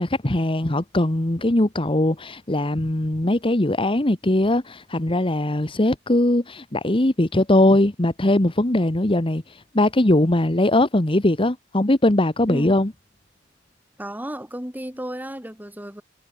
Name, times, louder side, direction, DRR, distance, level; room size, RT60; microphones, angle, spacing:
voice 1, 0.0-12.9, left 1 dB, 30° left, 1.4 m, -20 dB
voice 2, 12.5-12.8 14.0-16.0, equal, 10° right, 7.4 m, -33 dB
head